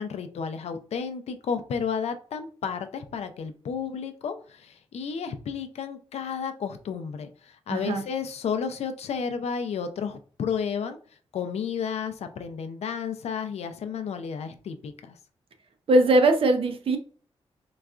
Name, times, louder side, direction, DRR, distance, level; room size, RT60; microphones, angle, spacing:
voice 1, 0.0-11.0 11.3-15.2, left 6 dB, 90° left, 8 dB, 0.4 m, -32 dB
voice 2, 7.7-8.0 15.9-17.0, right 2 dB, 60° right, 6 dB, 0.5 m, -20 dB
3.9 x 2.3 x 2.4 m, 0.41 s
wide cardioid pair, 170°, 11 cm